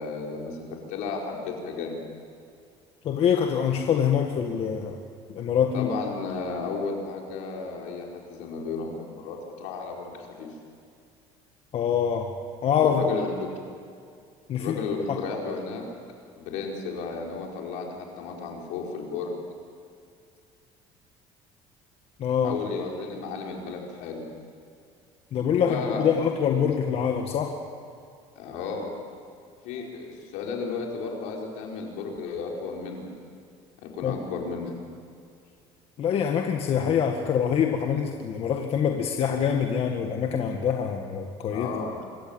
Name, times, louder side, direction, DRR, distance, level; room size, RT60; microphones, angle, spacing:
voice 1, 0.0-2.0 5.7-10.5 12.8-13.3 14.5-15.8 16.4-19.4 22.4-24.2 25.5-26.1 28.3-28.9 29.6-33.1 33.8-34.7 41.5-42.0, left 4 dB, 80° left, 0 dB, 4.9 m, -33 dB
voice 2, 3.0-5.0 5.3-5.9 11.7-12.3 12.6-13.0 14.5-14.8 15.1-15.2 22.2-22.6 25.3-27.6 34.0-34.1 36.0-41.7, left 8 dB, 50° left, 3 dB, 1.8 m, -25 dB
25.5 x 14.0 x 8.9 m, 2.3 s
cardioid pair, 110°, 13 cm